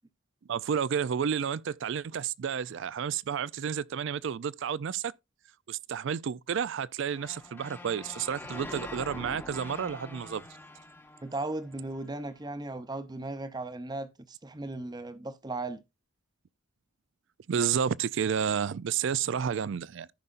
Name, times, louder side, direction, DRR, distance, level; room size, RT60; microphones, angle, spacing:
voice 1, 0.5-5.1 5.7-10.4 17.5-20.1, right 7 dB, 65° right, 0.4 m, -31 dB
sound 1, 7.1-12.1, left 2 dB, 10° left, 0.9 m, -44 dB
voice 2, 11.2-15.8, right 2 dB, 20° right, 0.7 m, -37 dB
14.5 x 5.5 x 2.5 m
head